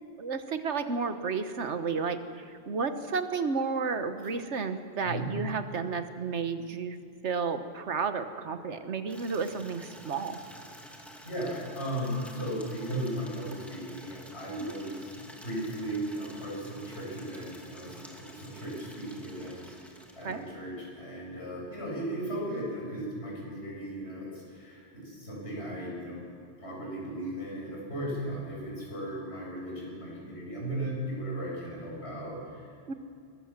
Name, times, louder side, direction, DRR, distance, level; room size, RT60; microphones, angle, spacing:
voice 1, 0.2-7.0 7.2-10.4 14.6-14.7 20.2-20.4 32.9-33.0, right 5 dB, 85° right, 9 dB, 1.5 m, -32 dB
Water tap faucet / Liquid, 9.1-20.7, equal, ahead, 2.6 m, -50 dB
voice 2, 11.2-26.2 26.6-33.0, right 1 dB, 70° left, -4 dB, 7.8 m, -36 dB
22.0 x 20.5 x 7.5 m, 2.4 s
omnidirectional pair, 1.1 m